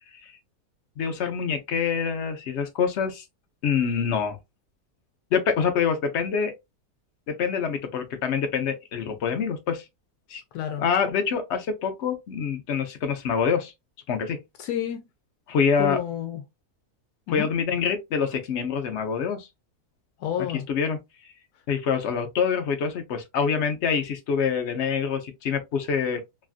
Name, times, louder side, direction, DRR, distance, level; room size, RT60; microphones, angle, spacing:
voice 1, 1.0-3.2 3.6-4.4 5.3-6.5 7.3-9.8 10.3-10.4 10.8-13.7 14.1-14.4 15.5-16.0 17.3-19.5 20.7-21.0 21.7-26.2, left 6 dB, 60° left, 0.8 m, -26 dB
voice 2, 10.5-10.8 14.6-15.0 15.8-16.4 17.3-17.5 20.2-20.6, left 9 dB, 80° left, 1.1 m, -29 dB
3.1 x 2.4 x 2.4 m
omnidirectional pair, 1.6 m